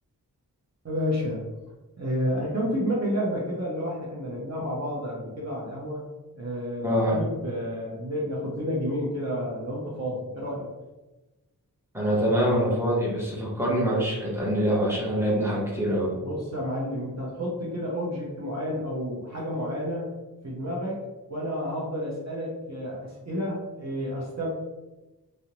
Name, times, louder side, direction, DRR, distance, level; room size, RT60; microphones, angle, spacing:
voice 1, 0.8-1.4 2.0-6.0 6.4-10.7 16.2-20.1 20.4-21.0 21.3-24.5, equal, 45° right, -4 dB, 0.7 m, -30 dB
voice 2, 6.8-7.2 11.9-16.1, equal, 5° right, -5 dB, 0.9 m, -24 dB
2.4 x 2.0 x 2.9 m, 1.1 s
wide cardioid pair, 55°, 36 cm